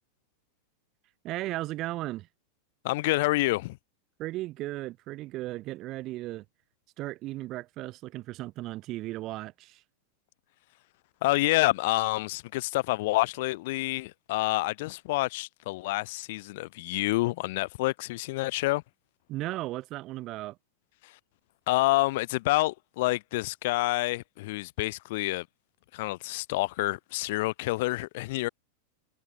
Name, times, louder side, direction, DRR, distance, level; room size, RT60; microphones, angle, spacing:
voice 1, 1.2-2.3 4.2-6.4 7.0-9.8 19.3-20.6, right 17 dB, 35° right, 0.8 m, -36 dB
voice 2, 2.8-3.8 11.2-18.8 21.0-21.1 21.7-25.5 25.9-28.5, left 20 dB, 50° left, 1.3 m, -28 dB
figure-of-eight pair, 90°, 0 cm